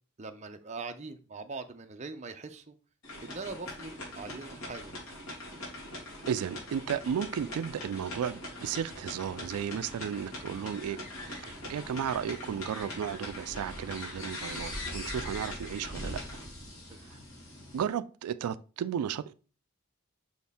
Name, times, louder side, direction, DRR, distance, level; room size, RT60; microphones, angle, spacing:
voice 1, 0.2-2.7 3.2-4.9, right 3 dB, 30° right, 0.5 m, -42 dB
sound 1, 3.0-17.8, left 1 dB, 75° left, 3.2 m, -42 dB
voice 2, 6.3-16.2 17.0-17.2 17.7-19.3, right 8 dB, 90° right, 0.3 m, -34 dB
sound 2, 8.8-17.9, left 1 dB, 15° left, 1.0 m, -54 dB
6.4 x 4.3 x 3.5 m
head